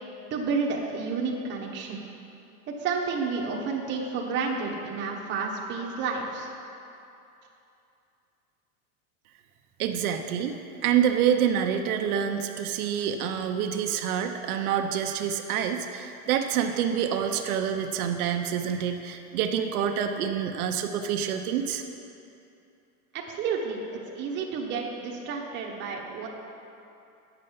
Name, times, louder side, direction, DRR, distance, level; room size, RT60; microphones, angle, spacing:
voice 1, 0.3-2.0 2.7-6.5 23.1-26.3, right 5 dB, 25° right, -1 dB, 0.9 m, -30 dB
voice 2, 9.8-21.8, right 8 dB, 75° right, 5 dB, 0.8 m, -27 dB
9.0 x 6.7 x 5.6 m, 2.7 s
supercardioid pair, 155°, 44 cm